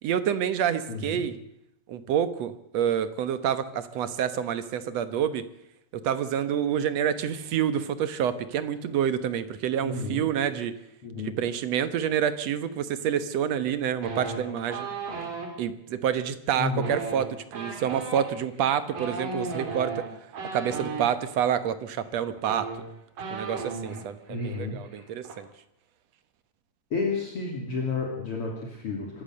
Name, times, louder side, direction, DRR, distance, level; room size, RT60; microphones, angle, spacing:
voice 1, 0.0-1.4 1.9-5.4 5.9-10.7 11.2-14.9 15.6-20.0 20.5-22.7 23.3-25.5, right 9 dB, 60° right, 13 dB, 2.0 m, -28 dB
voice 2, 0.9-1.2 9.8-10.2 11.0-11.4 16.6-17.0 24.3-24.8 26.9-29.2, left 4 dB, 45° left, -1 dB, 3.6 m, -31 dB
sound 1, 14.0-15.5 16.7-21.1 22.0-22.1 22.4-24.0 24.3-24.6 24.8-25.3, right 4 dB, 80° right, 5.1 m, -35 dB
24.5 x 14.0 x 7.8 m, 0.78 s
omnidirectional pair, 3.8 m